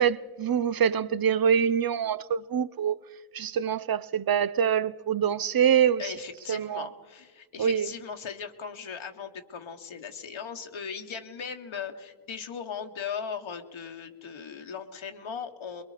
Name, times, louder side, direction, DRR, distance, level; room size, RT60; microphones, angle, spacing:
voice 1, 0.0-3.0 3.3-6.1 6.5-6.9 7.6-7.9, right 8 dB, 50° right, 0.7 m, -25 dB
voice 2, 6.0-15.8, left 6 dB, 75° left, 1.4 m, -38 dB
24.0 x 22.0 x 5.0 m
cardioid pair, 50°, 48 cm